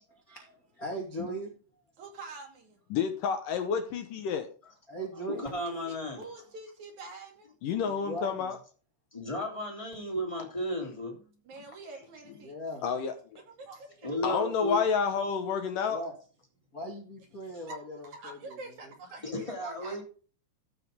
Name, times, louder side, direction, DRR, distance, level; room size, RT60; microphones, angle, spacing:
voice 1, 0.3-1.5 4.9-5.4 7.8-8.5 12.4-12.8 15.9-16.1 16.7-18.9, right 1 dB, 35° left, 1.4 m, -39 dB
voice 2, 2.0-2.8 5.6-7.5 11.4-12.5 13.5-14.2 17.7-20.0, right 3 dB, 45° right, 3.1 m, -46 dB
voice 3, 2.9-4.5 7.6-8.6 12.8-13.1 14.2-16.0, left 6 dB, 75° left, 2.0 m, -29 dB
voice 4, 5.3-6.2 9.1-11.2 14.0-14.8 19.2-20.0, left 1 dB, 10° left, 2.1 m, -34 dB
14.5 x 5.4 x 5.1 m
omnidirectional pair, 5.6 m